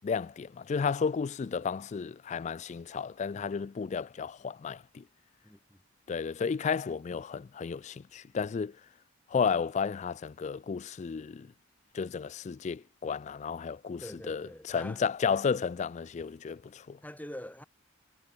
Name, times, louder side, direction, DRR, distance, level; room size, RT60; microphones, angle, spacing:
voice 1, 0.0-5.0 6.1-8.8 9.3-11.5 11.9-17.0, left 6 dB, 35° left, 0.3 m, -33 dB
voice 2, 5.4-5.8 14.0-15.0 17.0-17.6, left 1 dB, 10° left, 4.2 m, -44 dB
head